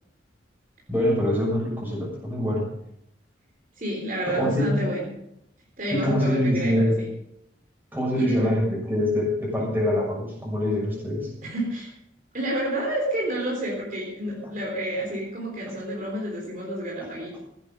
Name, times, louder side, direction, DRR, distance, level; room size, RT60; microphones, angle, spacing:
voice 1, 0.9-2.7 4.2-4.9 5.9-7.0 7.9-11.3 14.4-14.5, left 1 dB, 10° right, -3 dB, 6.6 m, -24 dB
voice 2, 3.8-5.1 5.8-7.1 8.1-8.5 11.4-11.9 12.3-17.4, right 1 dB, 45° right, -2 dB, 3.8 m, -29 dB
15.5 x 10.0 x 5.5 m, 0.79 s
head